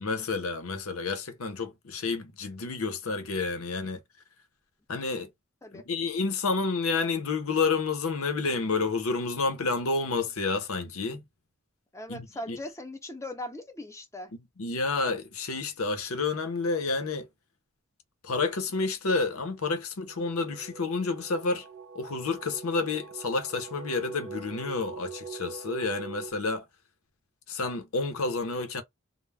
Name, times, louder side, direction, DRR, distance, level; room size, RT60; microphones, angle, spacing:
voice 1, 0.0-4.0 4.9-5.3 5.7-11.2 12.1-12.6 14.6-17.3 18.2-21.7 21.9-26.6 27.5-28.8, left 4 dB, 85° left, 0.7 m, -30 dB
voice 2, 11.9-14.3, left 1 dB, 15° left, 0.5 m, -39 dB
sound 1, 20.1-26.3, right 4 dB, 55° right, 0.5 m, -43 dB
2.3 x 2.1 x 3.3 m
head